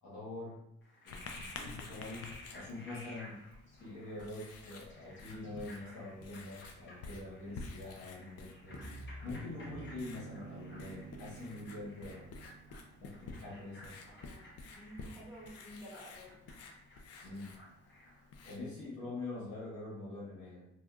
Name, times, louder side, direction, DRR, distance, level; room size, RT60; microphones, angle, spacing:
voice 1, 0.0-0.6 1.0-3.4 3.8-12.3 13.0-13.9 17.2-17.5 18.4-20.7, left 2 dB, 70° left, -6 dB, 1.3 m, -45 dB
Frog, 0.8-18.3, left 1 dB, 40° left, 0.9 m, -56 dB
Writing, 1.1-18.9, left 3 dB, 55° left, 0.5 m, -51 dB
sound 1, 8.7-13.5, right 3 dB, 35° right, 0.4 m, -50 dB
voice 2, 14.1-16.5, equal, 5° right, -8 dB, 1.1 m, -52 dB
2.8 x 2.4 x 2.3 m, 0.84 s
cardioid pair, 90°, 30 cm